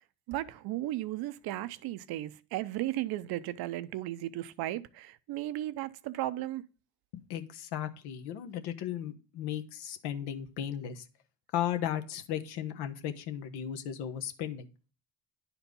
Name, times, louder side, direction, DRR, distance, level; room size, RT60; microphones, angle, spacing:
voice 1, 0.3-6.6, right 15 dB, 70° right, 0.7 m, -35 dB
voice 2, 7.1-11.0 11.5-14.6, left 10 dB, 75° left, 1.3 m, -35 dB
10.0 x 4.5 x 5.3 m
cardioid pair, 105°, 39 cm